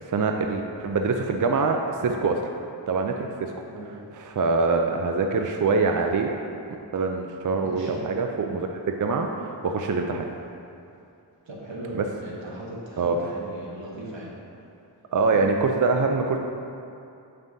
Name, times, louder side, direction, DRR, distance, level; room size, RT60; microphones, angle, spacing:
voice 1, 0.1-2.4 2.9-3.5 4.2-6.3 6.9-8.7 9.0-10.3 11.9-12.0 13.0-13.2 15.1-16.4, right 4 dB, 45° right, 3 dB, 0.4 m, -24 dB
voice 2, 7.6-8.1 11.4-14.3 15.3-15.5, right 2 dB, 80° right, -4 dB, 1.2 m, -37 dB
7.5 x 5.4 x 2.7 m, 2.6 s
wide cardioid pair, 40°, 44 cm